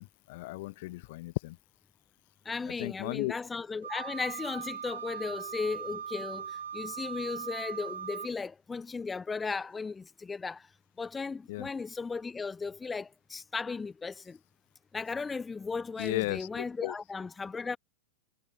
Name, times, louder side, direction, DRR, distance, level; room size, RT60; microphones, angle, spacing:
voice 1, 0.0-1.6 2.8-3.4 11.5-11.7 16.0-16.9, left 21 dB, 50° left, 1.0 m, -35 dB
voice 2, 2.4-10.7 11.0-14.4 14.9-17.8, left 4 dB, 15° left, 0.6 m, -36 dB
Wind instrument woodwind instrument, 3.8-8.3, right 8 dB, 70° right, 2.9 m, -40 dB
figure-of-eight pair, 90°, 0 cm